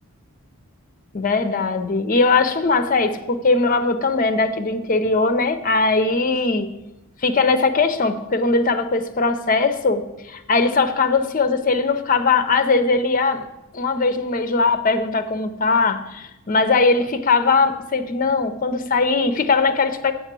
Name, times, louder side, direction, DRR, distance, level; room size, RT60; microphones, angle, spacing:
voice 1, 1.1-6.7 7.2-13.5 13.7-20.1, left 4 dB, 40° left, 9 dB, 0.6 m, -20 dB
7.9 x 6.6 x 6.0 m, 0.96 s
head